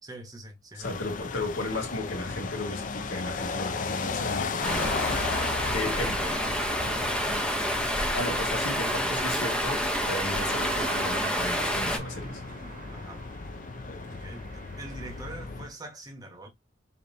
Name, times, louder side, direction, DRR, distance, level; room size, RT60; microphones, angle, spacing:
voice 1, 0.0-0.9 5.6-7.6 12.9-13.3 14.2-16.5, right 1 dB, 20° right, 1.2 m, -44 dB
voice 2, 0.8-4.9 5.7-6.3 8.1-12.4, left 2 dB, 75° left, 1.8 m, -34 dB
sound 1, 0.8-15.7, left 4 dB, 45° left, 0.5 m, -36 dB
Stream, 4.6-12.0, equal, 5° left, 0.8 m, -28 dB
sound 2, 5.2-15.7, right 3 dB, 50° right, 1.1 m, -44 dB
5.2 x 2.8 x 2.7 m
head